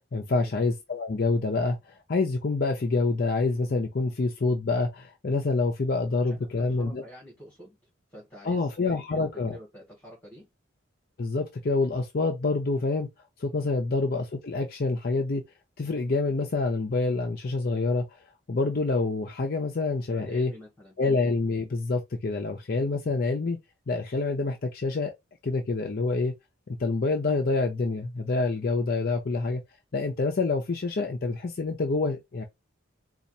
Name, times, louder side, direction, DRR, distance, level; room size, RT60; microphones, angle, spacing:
voice 1, 0.1-7.0 8.4-9.6 11.2-13.1 13.4-15.4 15.8-18.0 18.5-20.5 21.0-23.6 23.9-25.1 25.4-26.3 26.7-29.6 29.9-32.4, left 3 dB, 50° left, 0.5 m, -27 dB
voice 2, 6.2-7.8 8.1-10.5 13.7-13.9 20.1-21.0, equal, 10° left, 1.9 m, -48 dB
4.2 x 2.4 x 2.7 m
head